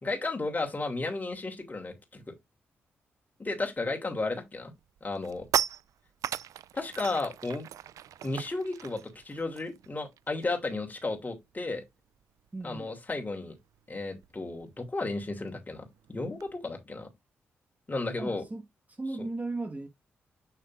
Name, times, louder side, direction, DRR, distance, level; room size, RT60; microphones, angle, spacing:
voice 1, 0.0-2.3 3.4-4.7 5.0-5.4 6.7-7.7 8.2-9.0 9.2-11.8 12.6-13.6 13.9-17.1 17.9-18.4 19.2-19.3, left 3 dB, 30° left, 2.6 m, -33 dB
sound 1, 4.1-4.4 4.8-10.7 11.0-11.2 11.5-16.5, right 10 dB, 70° right, 0.4 m, -38 dB
voice 2, 12.5-12.9 18.2-18.6 19.0-19.9, right 2 dB, 25° right, 1.5 m, -36 dB
7.4 x 6.3 x 2.5 m
hypercardioid pair, 40°, 6 cm